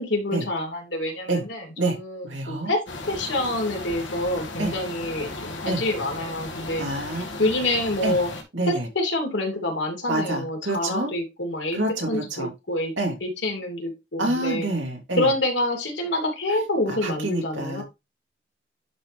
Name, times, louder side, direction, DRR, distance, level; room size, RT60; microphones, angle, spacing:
voice 1, 0.0-2.8 3.1-6.9 7.1-8.3 8.7-11.8 12.1-12.9 13.2-14.7 15.1-17.8, left 1 dB, 70° left, 3 dB, 2.7 m, -27 dB
voice 2, 2.2-2.7 4.6-4.7 5.6-5.8 6.8-7.4 8.0-8.1 8.5-8.9 10.1-11.1 11.7-12.5 13.0-13.1 14.2-15.3 16.9-17.8, right 2 dB, 80° right, 1 dB, 3.0 m, -27 dB
sound 1, 2.9-8.4, left 2 dB, 85° left, 2.0 m, -36 dB
11.0 x 3.9 x 3.3 m, 0.23 s
head